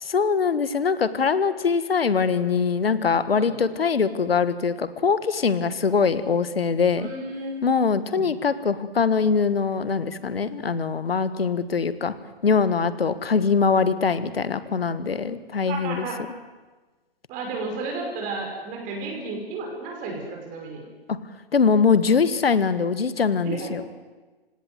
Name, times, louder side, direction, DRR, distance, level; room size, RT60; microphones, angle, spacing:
voice 1, 0.0-7.1 7.6-12.1 12.4-16.1 21.1-21.2 21.5-23.8, left 5 dB, 75° left, 13 dB, 1.6 m, -22 dB
voice 2, 7.0-7.6 8.1-8.3 15.7-16.2 17.3-20.8 23.4-23.7, right 3 dB, 25° right, 1 dB, 5.7 m, -33 dB
27.5 x 17.5 x 7.9 m, 1.2 s
figure-of-eight pair, 130°, 30 cm